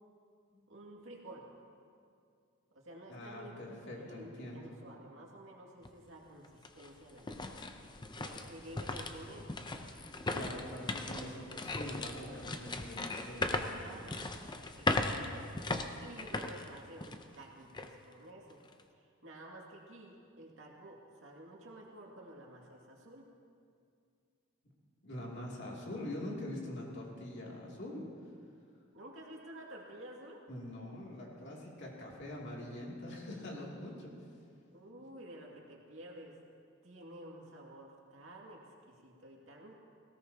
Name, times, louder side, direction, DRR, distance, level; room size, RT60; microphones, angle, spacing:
voice 1, 0.7-1.5 2.7-3.7 3.9-7.5 8.1-9.5 10.3-10.7 11.1-11.3 13.4-14.1 14.8-15.5 16.0-18.6 18.9-23.3 28.9-30.4 34.7-36.4 36.8-39.7, right 1 dB, 70° right, -2 dB, 2.3 m, -51 dB
voice 2, 3.1-4.6 10.3-11.4 11.7-14.1 25.0-28.0 30.5-34.1, left 1 dB, 60° left, -3 dB, 2.7 m, -44 dB
sound 1, 5.8-5.9 6.4-17.4 17.7-17.9 18.5-18.8, left 2 dB, 20° left, 0.6 m, -38 dB
18.5 x 17.0 x 2.9 m, 2.3 s
head